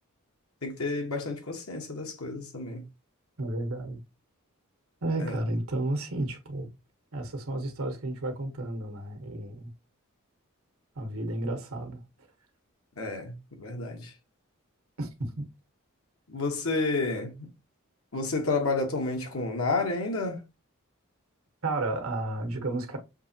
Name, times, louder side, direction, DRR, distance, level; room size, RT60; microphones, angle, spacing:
voice 1, 0.6-2.8 5.2-5.4 13.0-14.1 16.3-17.5 18.1-20.4, left 3 dB, 90° left, 1.2 m, -30 dB
voice 2, 3.4-4.0 5.0-6.7 7.1-9.7 11.0-12.0 15.0-15.4 21.6-23.0, right 2 dB, 80° right, 1.2 m, -32 dB
6.5 x 2.9 x 2.8 m
head